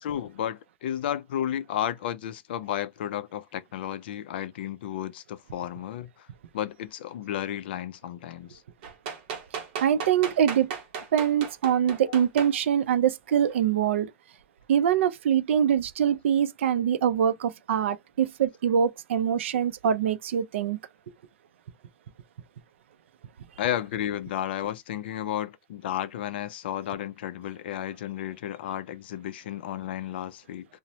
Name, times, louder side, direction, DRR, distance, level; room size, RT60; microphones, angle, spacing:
voice 1, 0.0-6.3 6.5-8.6 12.1-12.3 23.6-30.7, left 11 dB, 50° left, 0.3 m, -33 dB
sound 1, 8.8-12.5 13.5-13.6, right 6 dB, 35° right, 0.8 m, -35 dB
voice 2, 9.8-10.8 11.1-14.1 14.7-20.8, right 9 dB, 65° right, 0.4 m, -24 dB
2.9 x 2.0 x 2.7 m
supercardioid pair, 180°, 7 cm